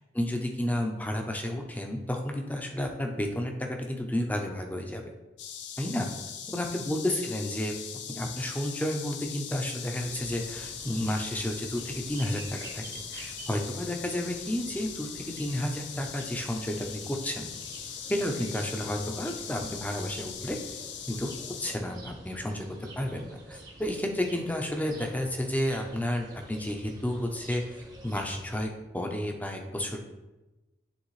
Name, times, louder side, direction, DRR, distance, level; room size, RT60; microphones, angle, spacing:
voice 1, 0.1-5.1 5.8-6.1 6.5-7.7 8.1-17.5 18.1-20.6 21.1-21.3 21.6-22.7 23.0-30.0, left 1 dB, 10° left, 3 dB, 0.6 m, -31 dB
sound 1, 5.4-21.8, left 8 dB, 80° left, 0.6 m, -41 dB
sound 2, 10.0-28.7, right 2 dB, 20° right, 0.8 m, -48 dB
9.7 x 3.6 x 3.2 m, 1.1 s
head